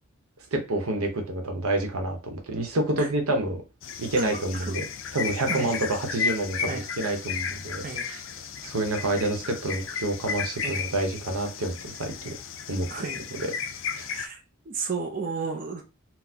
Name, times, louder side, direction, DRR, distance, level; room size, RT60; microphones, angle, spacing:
voice 1, 0.5-3.6 4.0-4.8 5.1-8.2 8.6-12.3 12.7-13.5 13.9-14.1, right 2 dB, 90° right, 4 dB, 0.8 m, -28 dB
sound 1, 3.8-14.3, left 6 dB, 60° left, 0.4 m, -34 dB
voice 2, 4.2-4.7 5.5-5.7 6.7-6.9 7.8-8.0 10.6-10.8 12.9-13.2 14.1-14.4 14.7-15.8, right 4 dB, 40° right, 2 dB, 0.5 m, -33 dB
4.0 x 2.1 x 2.7 m, 0.30 s
head